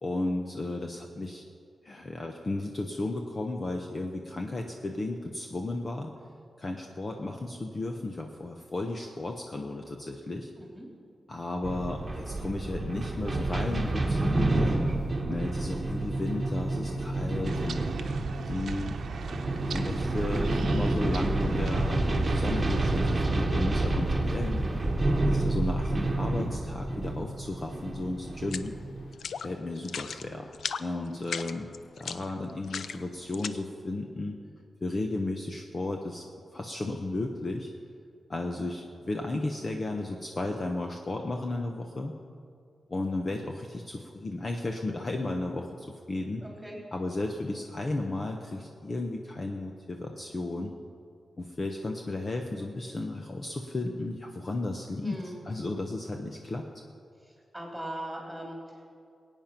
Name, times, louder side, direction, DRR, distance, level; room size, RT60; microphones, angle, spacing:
voice 1, 0.0-1.4 1.8-6.1 6.6-10.5 11.3-14.8 15.3-17.8 18.5-19.0 19.7-24.8 25.3-28.7 29.4-30.5 30.8-31.7 32.0-34.4 34.8-36.3 36.5-37.7 38.3-42.1 42.9-46.4 46.9-50.7 51.4-55.2 55.4-56.7, left 2 dB, 30° left, 3 dB, 0.8 m, -34 dB
voice 2, 10.5-10.9 31.1-31.2 46.4-46.8 55.0-55.4 57.2-58.9, right 1 dB, 5° right, -1 dB, 3.1 m, -40 dB
sound 1, 11.6-29.1, right 2 dB, 25° right, 1.4 m, -29 dB
sound 2, 17.4-23.2, right 4 dB, 75° right, 1.0 m, -36 dB
sound 3, 28.4-28.7 29.1-29.5 29.8-30.2 30.5-30.9 31.2-33.5, left 6 dB, 80° left, 0.5 m, -36 dB
21.5 x 9.1 x 5.8 m, 2.3 s
wide cardioid pair, 170°, 0 cm